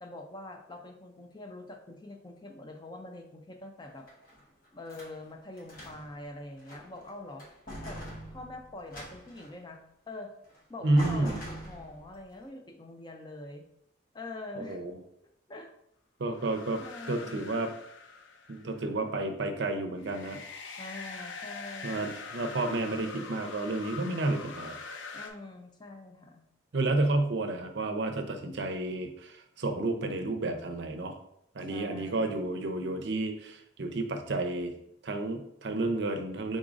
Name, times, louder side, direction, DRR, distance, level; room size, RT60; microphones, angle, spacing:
voice 1, 0.0-4.1 4.7-7.4 7.8-8.0 8.3-10.3 10.7-13.7 14.1-14.8 15.5-15.7 16.8-17.6 20.8-22.2 25.1-26.4 31.6-32.4, left 2 dB, 20° left, 4 dB, 0.4 m, -44 dB
sound 1, 3.8-5.2 5.6-6.2 6.6-7.1 7.4-9.6 10.5-10.6 11.0-12.1, equal, 45° left, 1.1 m, -43 dB
voice 2, 10.8-11.4 14.6-15.0 16.2-16.8 17.1-17.7 18.5-20.4 21.8-24.8 26.7-31.2 31.5-34.7 35.0-36.6, right 2 dB, 60° right, 5 dB, 0.5 m, -31 dB
sound 2, 16.3-18.9 20.0-25.3, left 4 dB, 75° left, 0.5 m, -43 dB
5.0 x 3.8 x 2.5 m, 0.75 s
head